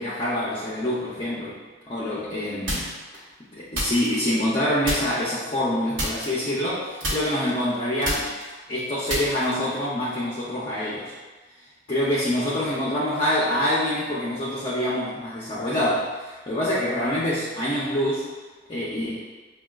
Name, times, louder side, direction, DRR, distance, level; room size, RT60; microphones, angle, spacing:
voice 1, 0.0-1.6 1.9-2.9 3.5-8.3 8.7-11.1 11.9-18.3 18.7-19.2, left 1 dB, 30° left, -8 dB, 0.6 m, -26 dB
sound 1, 2.7-3.2 3.7-4.6 4.8-5.4 5.9-6.7 7.0-9.8, equal, 75° right, 1.1 m, -30 dB
6.0 x 2.3 x 2.3 m, 1.3 s
head